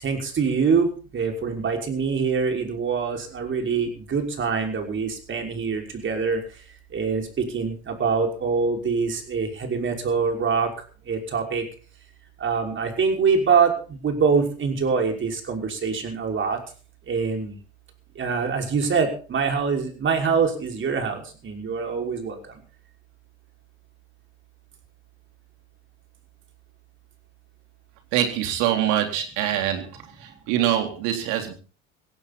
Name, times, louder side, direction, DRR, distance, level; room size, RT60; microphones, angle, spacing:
voice 1, 0.0-6.4 6.9-10.7 11.1-11.6 12.4-16.6 17.1-17.6 18.2-22.4, right 5 dB, 35° right, 3 dB, 5.8 m, -24 dB
voice 2, 28.1-31.5, right 11 dB, 65° right, 5 dB, 3.8 m, -24 dB
17.0 x 16.5 x 4.3 m, 0.38 s
hypercardioid pair, 70°, 33 cm